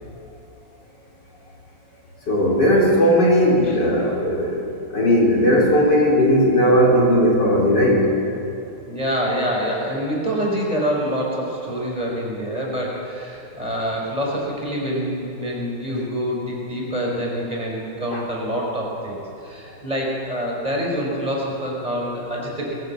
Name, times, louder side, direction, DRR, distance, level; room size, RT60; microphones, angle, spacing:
voice 1, 2.3-8.1 18.1-18.2, equal, 65° left, -3 dB, 4.6 m, -17 dB
voice 2, 8.8-22.7, equal, 20° right, -3 dB, 5.1 m, -26 dB
21.5 x 18.0 x 7.7 m, 2.8 s
omnidirectional pair, 2.0 m